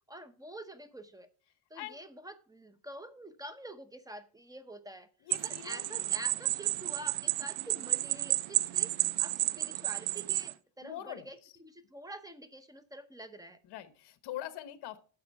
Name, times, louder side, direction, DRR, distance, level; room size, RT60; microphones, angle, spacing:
voice 1, 0.1-1.3 1.7-5.1 5.4-13.6, right 1 dB, 10° right, 12 dB, 0.6 m, -47 dB
voice 2, 5.2-6.1 10.8-11.5 13.6-15.0, left 12 dB, 55° left, 12 dB, 1.1 m, -43 dB
sound 1, 5.3-10.5, right 15 dB, 80° right, 0.6 m, -31 dB
9.6 x 6.3 x 4.7 m, 0.40 s
cardioid pair, 140°, 47 cm